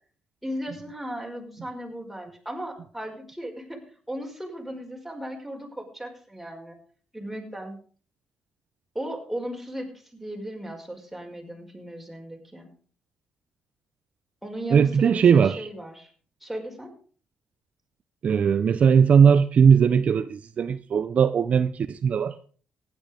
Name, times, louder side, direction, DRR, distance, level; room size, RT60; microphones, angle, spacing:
voice 1, 0.4-6.8 7.1-7.7 9.0-12.7 14.4-16.1 16.4-16.9, right 1 dB, 5° right, 5.2 m, -36 dB
voice 2, 14.7-15.7 18.2-22.5, right 7 dB, 50° right, 0.7 m, -19 dB
15.5 x 10.5 x 5.1 m
cardioid pair, 85°, 3 cm